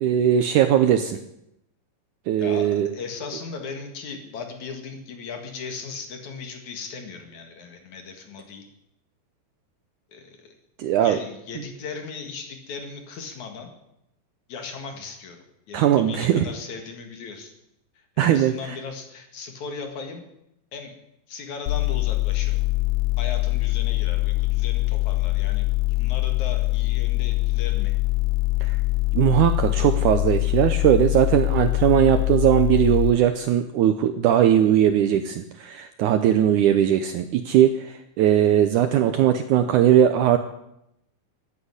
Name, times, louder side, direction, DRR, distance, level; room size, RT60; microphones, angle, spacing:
voice 1, 0.0-1.2 2.3-2.9 10.8-11.2 15.7-16.5 18.2-18.8 28.6-28.8 29.1-40.4, right 10 dB, 75° right, 9 dB, 1.9 m, -19 dB
voice 2, 2.4-8.6 10.1-10.5 11.0-13.7 14.5-17.5 18.2-20.2 20.7-20.9 21.3-22.6 23.2-27.9, left 5 dB, 55° left, 4 dB, 3.0 m, -37 dB
sound 1, 21.7-33.1, left 21 dB, 75° left, 1.9 m, -23 dB
14.5 x 9.1 x 9.8 m, 0.81 s
omnidirectional pair, 4.3 m